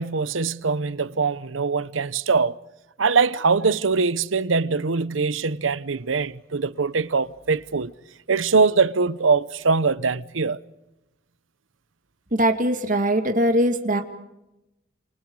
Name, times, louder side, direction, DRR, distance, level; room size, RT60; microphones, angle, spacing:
voice 1, 0.0-2.6 3.0-7.9 8.3-10.6, right 4 dB, 90° right, 0.9 m, -22 dB
voice 2, 12.3-14.0, right 1 dB, 40° right, 2.4 m, -21 dB
29.5 x 28.0 x 4.8 m
head